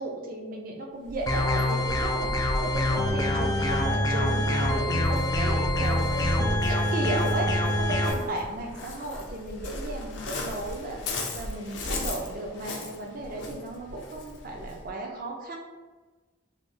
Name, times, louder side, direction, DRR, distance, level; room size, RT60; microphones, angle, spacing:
voice 1, 0.0-15.6, right 2 dB, 50° right, 1 dB, 0.5 m, -35 dB
Waves surf, 1.0-14.9, left 1 dB, 75° left, 0.5 m, -37 dB
sound 1, 1.3-8.1, left 1 dB, 20° left, 0.3 m, -25 dB
3.2 x 2.3 x 3.2 m, 1.3 s
head